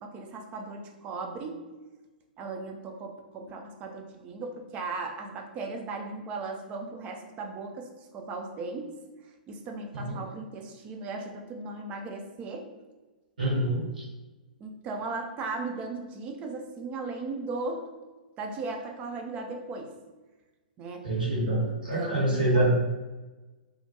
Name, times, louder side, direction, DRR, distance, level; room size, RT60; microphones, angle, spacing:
voice 1, 0.0-1.7 2.4-9.0 9.5-12.7 14.6-17.9 18.4-19.9 20.8-21.1 21.6-22.7, right 3 dB, 25° right, 3 dB, 0.4 m, -37 dB
voice 2, 13.4-14.0 21.0-22.7, right 1 dB, 70° right, -6 dB, 1.0 m, -26 dB
2.3 x 2.1 x 2.8 m, 1.2 s
figure-of-eight pair, 105°, 5 cm